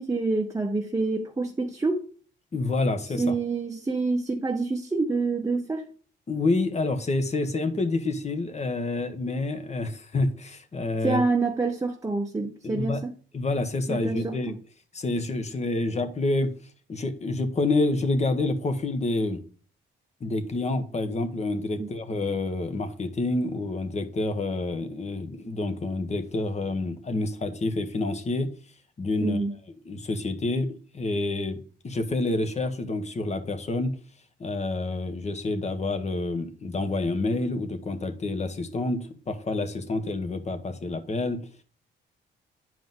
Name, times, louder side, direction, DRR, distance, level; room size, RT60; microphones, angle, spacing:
voice 1, 0.0-2.0 3.2-5.9 11.0-13.1 13.9-14.6 21.8-21.9 29.2-29.5, right 3 dB, 15° right, 2 dB, 0.9 m, -27 dB
voice 2, 2.5-3.3 6.3-11.2 12.6-13.0 13.3-14.5 14.9-16.5 16.9-19.4 20.2-28.5 29.0-29.4 29.9-34.0 34.4-41.5, left 2 dB, 35° left, 8 dB, 1.3 m, -28 dB
9.3 x 5.0 x 3.8 m, 0.40 s
cardioid pair, 90°, 20 cm